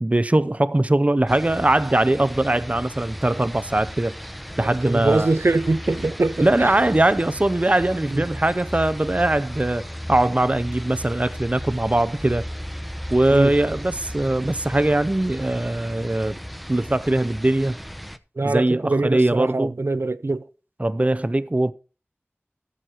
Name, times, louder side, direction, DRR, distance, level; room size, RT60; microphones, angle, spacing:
voice 1, 0.0-4.1 4.6-5.3 6.4-12.4 13.1-16.3 16.7-17.8 18.4-19.7 20.8-21.7, right 1 dB, 30° right, 0.6 m, -21 dB
sound 1, 1.3-18.2, equal, ahead, 0.8 m, -35 dB
voice 2, 4.6-6.8 8.1-8.2 13.3-13.5 18.4-20.5, right 2 dB, 70° right, 0.6 m, -23 dB
14.0 x 6.4 x 4.3 m
wide cardioid pair, 45°, 4 cm